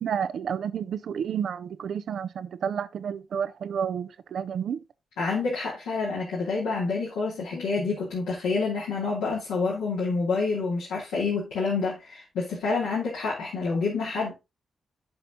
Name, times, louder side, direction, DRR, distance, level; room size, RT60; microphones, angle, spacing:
voice 1, 0.0-4.8, right 8 dB, 70° right, 0.6 m, -30 dB
voice 2, 5.2-14.3, left 4 dB, 85° left, 2.6 m, -28 dB
8.8 x 5.5 x 3.8 m
hypercardioid pair, 40°, 0 cm